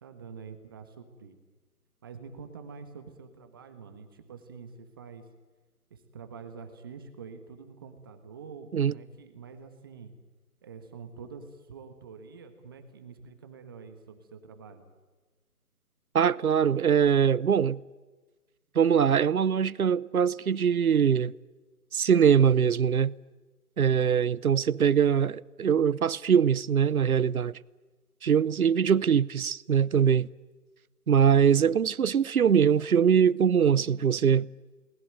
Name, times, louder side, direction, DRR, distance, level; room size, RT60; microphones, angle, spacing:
voice 1, 0.0-1.4 2.0-5.2 5.9-10.1 10.6-14.8, right 5 dB, 15° right, 1.3 m, -46 dB
voice 2, 16.1-17.8 18.7-21.3 21.9-23.1 23.8-27.6 28.2-30.3 31.1-34.5, right 7 dB, 65° right, 0.8 m, -22 dB
29.5 x 20.5 x 9.1 m
figure-of-eight pair, 165°, 45 cm